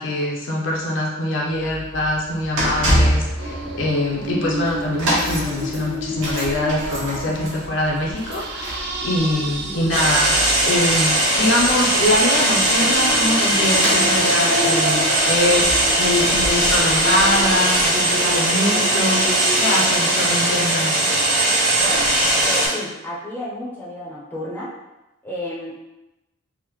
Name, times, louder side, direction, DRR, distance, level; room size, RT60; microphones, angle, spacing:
voice 1, 0.0-21.1, left 1 dB, 65° left, -2 dB, 0.5 m, -23 dB
sound 1, 1.5-17.8 18.1-18.3 19.1-19.2, equal, 75° right, 1.1 m, -28 dB
sound 2, 3.4-20.7, equal, 55° right, 0.4 m, -31 dB
sound 3, 9.9-22.7, right 1 dB, 40° right, 0.9 m, -19 dB
voice 2, 21.8-24.7 25.2-25.8, left 1 dB, 10° left, -7 dB, 0.6 m, -32 dB
3.4 x 2.0 x 3.0 m, 0.97 s
head